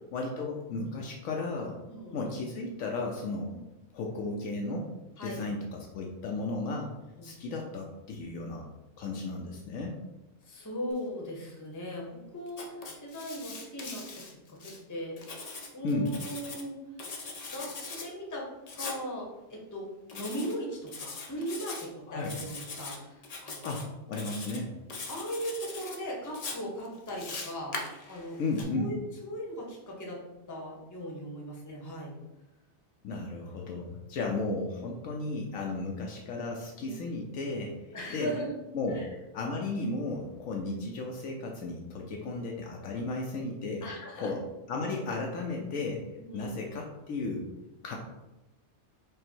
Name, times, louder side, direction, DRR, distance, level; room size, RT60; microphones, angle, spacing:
voice 1, 0.1-1.8 2.1-3.5 3.9-4.9 5.2-6.9 7.2-8.7 9.0-10.0 15.8-16.1 22.1-22.3 23.6-24.7 28.4-28.9 33.0-37.7 38.1-38.3 38.7-39.0 39.3-43.8 44.2-44.4 44.7-46.0 46.3-47.5 47.8-48.0, left 3 dB, 75° left, 0 dB, 1.0 m, -34 dB
voice 2, 1.9-2.2 5.2-5.4 7.2-7.4 10.5-14.0 14.5-15.2 15.7-16.7 17.5-18.5 18.7-23.7 25.1-27.8 28.1-28.4 28.7-30.2 30.5-32.2 36.8-37.0 37.9-38.5 38.9-39.1 42.1-42.3 43.8-44.3 46.3-46.6, equal, 15° left, -2 dB, 0.7 m, -38 dB
Writing, 12.5-14.8 15.2-16.6 17.0-18.1 18.7-19.0 20.1-20.6 20.9-21.8 22.2-23.0 23.2-23.8 24.1-24.6 24.9-26.0 26.3-28.6, left 3 dB, 50° left, 0.4 m, -41 dB
5.0 x 2.1 x 4.4 m, 0.99 s
omnidirectional pair, 1.4 m